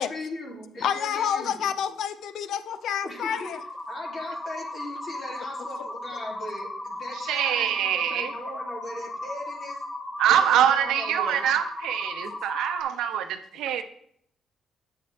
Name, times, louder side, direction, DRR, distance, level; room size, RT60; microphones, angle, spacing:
voice 1, 0.0-1.7 3.0-3.5 3.9-9.8 10.3-11.5, left 1 dB, 45° left, 2.8 m, -39 dB
voice 2, 0.8-3.6 12.5-12.7, left 8 dB, 75° left, 0.5 m, -28 dB
sound 1, 2.8-12.8, left 1 dB, 30° left, 1.1 m, -36 dB
voice 3, 7.3-8.3 10.2-13.8, right 10 dB, 85° right, 0.7 m, -24 dB
7.7 x 7.7 x 3.4 m
cardioid pair, 90°, 0 cm